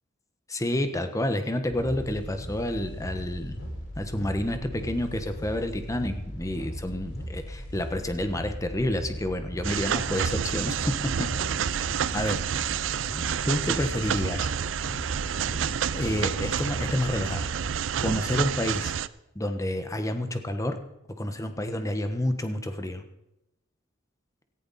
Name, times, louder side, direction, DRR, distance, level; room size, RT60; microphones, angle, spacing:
voice 1, 0.5-3.6 4.0-11.3 11.7-12.5 13.4-14.5 15.9-17.6 18.0-18.9 19.3-20.8 21.2-23.0, left 1 dB, 15° left, 7 dB, 1.2 m, -29 dB
sound 1, 1.7-17.7, equal, 70° left, 7.7 m, -38 dB
sound 2, 9.6-19.1, right 8 dB, 80° right, 0.5 m, -29 dB
17.5 x 14.5 x 4.2 m, 0.89 s
head